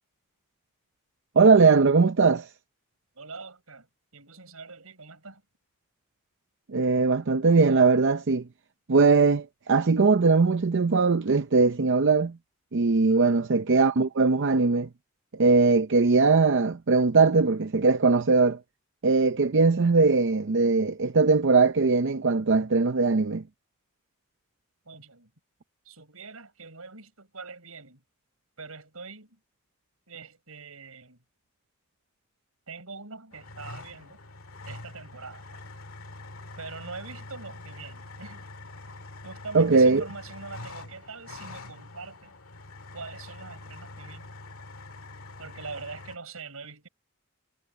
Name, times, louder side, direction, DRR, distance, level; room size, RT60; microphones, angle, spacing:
voice 1, 1.4-2.5 6.7-8.4 8.9-12.4 12.7-14.9 15.3-18.6 19.0-23.4 39.5-40.0, right 4 dB, 60° right, 0.6 m, -20 dB
voice 2, 3.2-3.9 4.1-5.4 13.1-13.4 24.9-25.3 25.9-28.0 28.6-29.4 30.1-31.2 32.7-34.2 34.7-35.6 36.6-38.5 39.2-42.3 42.9-44.3 45.4-46.9, right 4 dB, 85° right, 5.5 m, -43 dB
sound 1, 33.3-46.2, left 2 dB, 75° left, 2.0 m, -44 dB
head